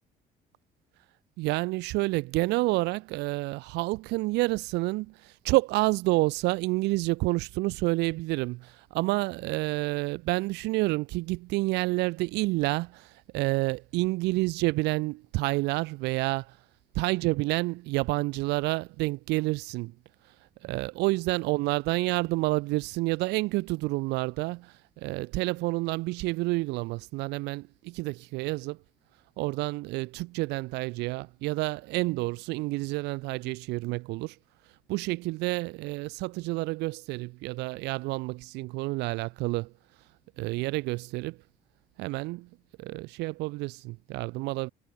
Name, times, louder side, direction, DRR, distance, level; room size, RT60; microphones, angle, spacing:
voice 1, 1.4-16.5 17.0-19.9 20.6-28.8 29.4-34.3 34.9-39.7 40.4-41.4 42.0-42.5 42.8-44.7, right 22 dB, 85° right, 0.4 m, -29 dB
cardioid pair, 110°, 17 cm